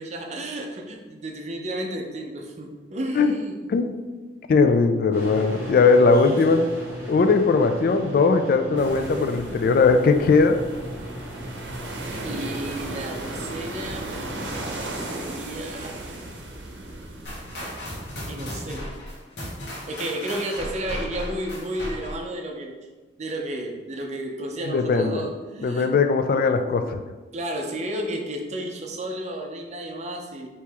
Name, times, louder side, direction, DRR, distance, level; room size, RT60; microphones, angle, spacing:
voice 1, 0.0-3.6 12.2-14.5 14.9-16.0 17.6-17.8 18.3-18.9 19.9-22.8 23.2-25.9 27.3-30.5, right 1 dB, 40° right, 2 dB, 0.5 m, -32 dB
voice 2, 4.5-6.7 7.1-10.6 24.7-25.3 25.6-27.0, left 4 dB, 55° left, 8 dB, 0.3 m, -19 dB
sound 1, 5.1-15.5, equal, 15° right, 1.3 m, -38 dB
sound 2, 8.8-18.2, right 2 dB, 80° right, 0.7 m, -36 dB
sound 3, 17.2-22.3, equal, 80° left, 1.3 m, -35 dB
4.5 x 3.0 x 3.4 m, 1.3 s
head